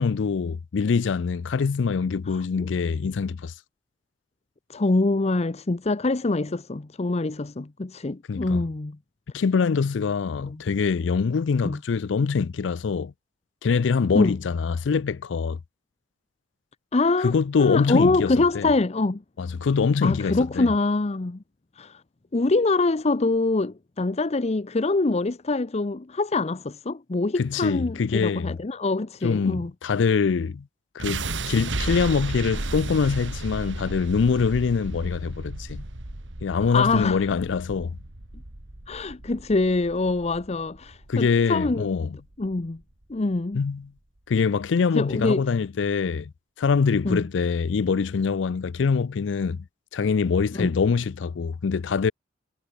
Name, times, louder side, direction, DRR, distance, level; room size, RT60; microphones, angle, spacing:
voice 1, 0.0-3.5 8.3-8.6 9.3-13.1 13.6-15.6 17.2-18.7 19.4-20.7 27.4-28.6 29.2-30.6 30.9-35.8 36.4-38.0 41.1-42.2 43.5-43.9 44.3-46.3 46.6-49.6 49.9-52.1, left 5 dB, 80° left, 0.4 m, -24 dB
voice 2, 2.3-2.7 4.7-9.0 10.5-10.6 11.6-11.8 14.1-14.4 16.9-17.3 17.6-19.2 20.0-21.4 21.8-22.0 22.3-29.7 36.7-37.2 38.9-42.0 42.4-42.8 43.1-43.6 44.9-45.5 47.0-47.3 50.5-50.7, left 3 dB, 35° left, 0.7 m, -24 dB
sound 1, 31.0-43.0, right 2 dB, 85° right, 2.6 m, -34 dB
head